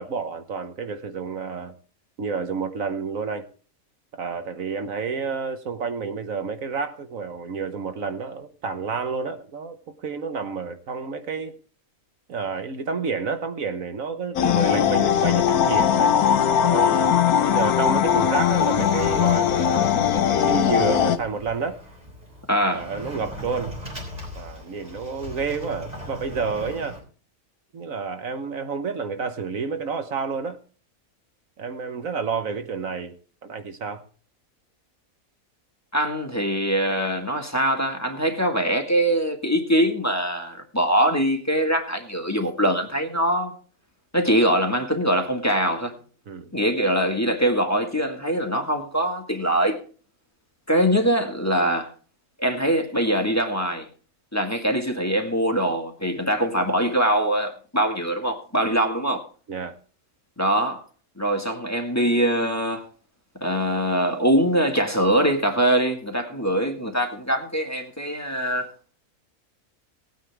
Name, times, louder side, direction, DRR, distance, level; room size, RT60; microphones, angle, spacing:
voice 1, 0.0-1.7 2.2-3.5 4.1-11.6 12.3-16.1 16.6-21.8 22.7-23.8 24.3-27.0 27.7-30.6 31.6-33.1 33.4-34.0 46.3-46.5 59.5-59.7, right 5 dB, 70° right, 1.5 m, -30 dB
sound 1, 14.4-21.2, left 9 dB, 85° left, 1.3 m, -20 dB
voice 2, 14.4-14.7 22.5-22.9 35.9-43.5 44.1-46.0 46.5-49.8 50.7-51.9 52.4-53.9 54.3-59.2 60.4-60.8 61.2-62.9 63.4-68.7, right 1 dB, 10° left, 1.8 m, -23 dB
Sliding door, 17.6-27.0, equal, 25° right, 4.2 m, -39 dB
18.5 x 9.3 x 3.5 m
omnidirectional pair, 1.5 m